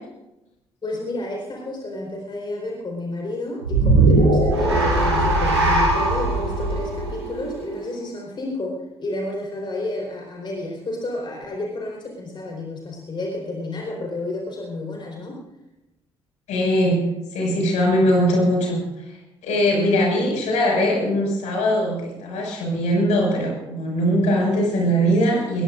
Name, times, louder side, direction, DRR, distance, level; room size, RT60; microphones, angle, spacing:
voice 1, 0.8-15.4, left 2 dB, 35° left, -1 dB, 4.6 m, -31 dB
sound 1, 3.6-8.0, right 2 dB, 85° right, 3.4 m, -19 dB
voice 2, 16.5-17.1 17.3-18.8 19.4-25.6, equal, 60° left, -1 dB, 6.1 m, -20 dB
21.0 x 21.0 x 2.6 m, 0.95 s
figure-of-eight pair, 45°, 14 cm